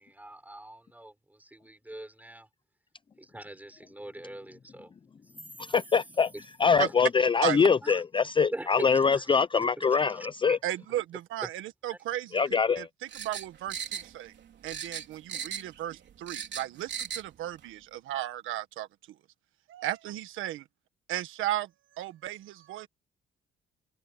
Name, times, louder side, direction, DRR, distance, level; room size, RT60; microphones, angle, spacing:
voice 1, 0.0-2.5 3.2-4.9 6.8-6.9 7.8-8.0 8.5-9.4 9.8-10.6, right 1 dB, 10° right, 6.6 m, -43 dB
voice 2, 5.7-6.3 6.6-10.6 12.3-12.9, left 5 dB, 25° left, 0.5 m, -24 dB
voice 3, 10.6-12.4 12.7-12.9 13.1-14.3 14.6-18.9 19.7-20.6 21.1-21.7 22.0-22.9, right 13 dB, 90° right, 1.5 m, -35 dB
sound 1, 13.1-14.4 14.7-15.8 16.1-17.3 17.6-17.7, right 7 dB, 65° right, 3.7 m, -37 dB
cardioid pair, 90°, 20 cm